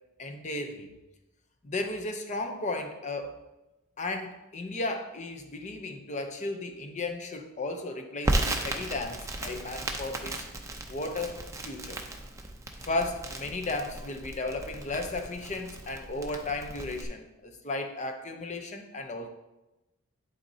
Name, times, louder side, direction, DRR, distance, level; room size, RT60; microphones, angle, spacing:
voice 1, 0.2-0.9 1.6-3.4 4.0-10.4 10.9-12.0 12.8-19.3, left 2 dB, 35° left, 5 dB, 0.6 m, -35 dB
Crackle, 8.2-17.0, right 1 dB, 15° right, 0.5 m, -35 dB
11.0 x 4.2 x 2.7 m, 1.0 s
head